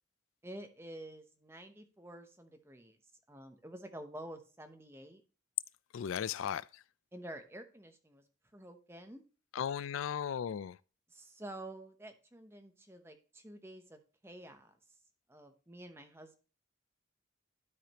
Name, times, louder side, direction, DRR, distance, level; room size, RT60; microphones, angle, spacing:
voice 1, 0.4-3.0 3.3-5.2 7.1-8.2 8.5-9.2 11.1-14.8 15.3-16.4, right 1 dB, 10° right, 0.9 m, -49 dB
voice 2, 5.9-6.8 9.5-10.8, left 8 dB, 85° left, 0.4 m, -36 dB
12.0 x 5.0 x 2.9 m
head